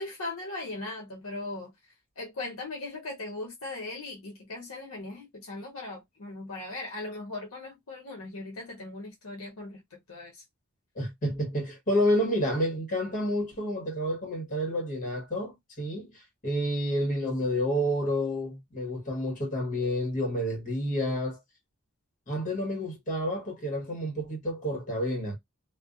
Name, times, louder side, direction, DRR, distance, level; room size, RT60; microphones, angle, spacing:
voice 1, 0.0-10.4, left 2 dB, 65° left, 0.8 m, -39 dB
voice 2, 10.9-21.4 22.3-25.4, equal, 35° left, 1.1 m, -29 dB
2.5 x 2.1 x 2.4 m
head